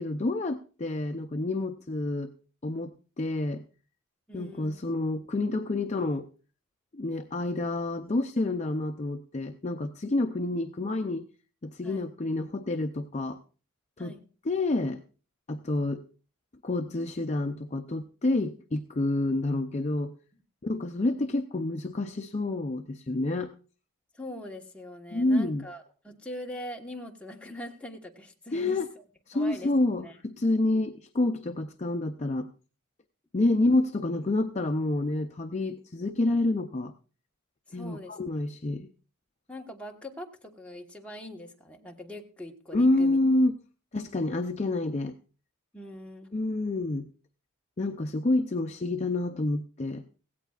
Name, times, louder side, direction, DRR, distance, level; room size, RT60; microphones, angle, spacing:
voice 1, 0.0-2.3 2.6-3.6 4.3-6.3 6.9-11.3 11.6-13.4 14.0-14.2 14.5-15.0 15.5-16.0 16.6-20.1 20.6-23.5 25.1-25.6 28.5-28.9 29.3-32.5 33.3-36.9 37.7-38.9 42.7-43.6 43.9-45.2 46.3-47.1 47.8-50.0, left 2 dB, 30° left, 5 dB, 0.6 m, -28 dB
voice 2, 4.3-4.8 11.8-12.1 14.0-14.3 24.1-29.0 29.3-29.7 30.0-30.1 37.7-38.2 39.5-43.2 45.7-46.3, equal, 5° left, 0 dB, 1.3 m, -42 dB
17.0 x 16.0 x 2.4 m, 0.37 s
head